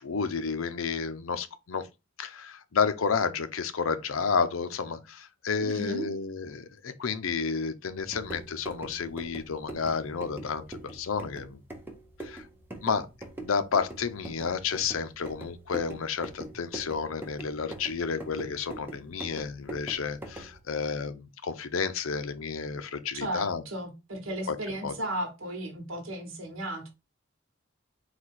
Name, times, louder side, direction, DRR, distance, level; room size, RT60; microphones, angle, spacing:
voice 1, 0.0-1.9 2.2-11.6 12.2-12.5 12.8-13.1 13.4-23.6 24.5-24.6 24.8-24.9, left 5 dB, 85° left, 0.6 m, -31 dB
voice 2, 5.6-6.1 23.1-26.9, right 1 dB, 75° right, 1.2 m, -35 dB
sound 1, 8.0-20.6, right 1 dB, 10° right, 0.8 m, -43 dB
4.1 x 2.3 x 4.5 m
head